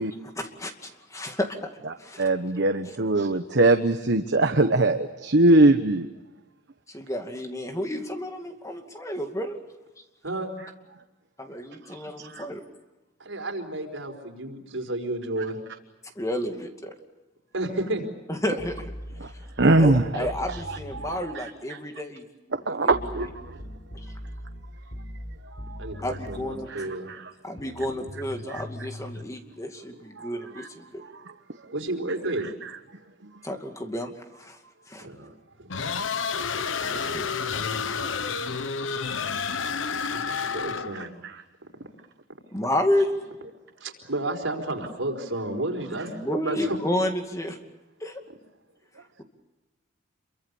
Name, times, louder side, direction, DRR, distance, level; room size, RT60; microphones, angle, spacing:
voice 1, 0.0-1.7 2.0-2.2 2.8-2.9 6.9-9.6 11.4-12.6 16.2-16.9 18.3-18.9 19.8-22.2 22.8-23.3 26.0-26.7 27.4-31.0 33.4-34.6 34.9-35.1 36.8-37.3 42.5-43.1 46.1-47.6 48.0-48.2, left 1 dB, 15° left, 5 dB, 2.4 m, -31 dB
voice 2, 2.2-6.1 12.2-12.4 19.2-19.3 19.6-21.5 22.5-23.3 25.7-25.8 26.7-27.2 28.5-28.6 30.2-30.3 30.6-30.7 32.2-32.3 32.6-32.7 41.2-41.3, right 2 dB, 65° right, 7 dB, 1.2 m, -22 dB
voice 3, 13.2-15.6 17.5-18.1 25.8-27.1 31.1-31.3 31.7-32.5 33.3-33.4 35.0-35.7 36.6-37.2 37.7-38.0 40.1-41.2 43.8-46.8, right 2 dB, 85° right, 3 dB, 4.7 m, -32 dB
sound 1, 18.6-21.2 22.9-26.5 27.6-29.2, left 1 dB, 55° left, 5.0 m, -40 dB
sound 2, 35.7-41.1, left 5 dB, 75° left, 1.0 m, -30 dB
28.0 x 24.0 x 7.1 m, 1.1 s
head